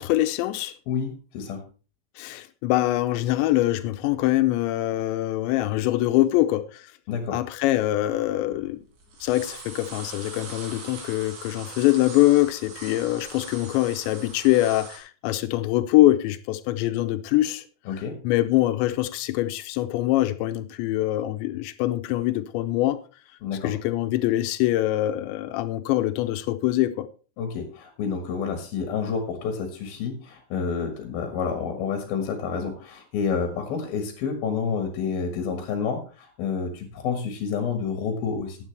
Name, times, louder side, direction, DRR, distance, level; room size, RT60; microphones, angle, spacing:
voice 1, 0.0-0.7 2.2-6.9 7.3-8.8 9.2-17.6 18.2-23.0 23.6-27.1, left 15 dB, 85° left, 2.9 m, -23 dB
voice 2, 0.9-1.6 7.1-7.4 17.9-18.2 23.4-23.7 27.4-38.6, left 6 dB, 65° left, 3.0 m, -29 dB
sound 1, 8.1-8.7 9.0-15.0, right 4 dB, 85° right, 5.7 m, -41 dB
14.5 x 9.7 x 3.3 m
omnidirectional pair, 5.1 m